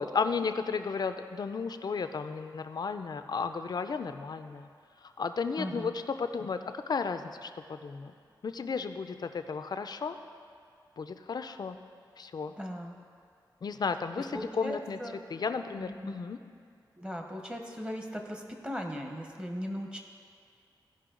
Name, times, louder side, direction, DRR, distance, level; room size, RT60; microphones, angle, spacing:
voice 1, 0.0-4.7 5.0-8.1 8.4-10.2 11.0-11.8 12.2-12.5 13.6-15.0 15.3-16.4, left 5 dB, 55° left, 9 dB, 0.5 m, -34 dB
voice 2, 5.6-5.9 12.6-13.0 14.3-15.2 15.8-16.1 17.0-20.0, equal, 10° right, 2 dB, 1.0 m, -38 dB
15.5 x 5.4 x 3.8 m, 2.3 s
wide cardioid pair, 95°, 8 cm